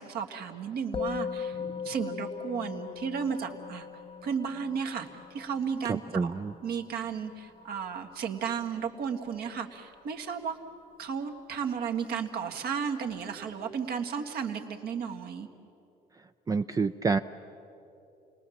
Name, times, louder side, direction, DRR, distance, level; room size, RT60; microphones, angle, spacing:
voice 1, 0.0-1.6 1.8-3.9 4.2-6.3 6.6-10.6 11.0-15.5, right 7 dB, 65° right, 4 dB, 1.8 m, -34 dB
Musical instrument, 0.9-10.5, left 6 dB, 35° left, 0.6 m, -40 dB
voice 2, 5.9-6.5 16.5-17.2, right 4 dB, 20° right, 9 dB, 0.4 m, -28 dB
29.0 x 20.0 x 7.1 m, 2.9 s
cardioid pair, 110°, 17 cm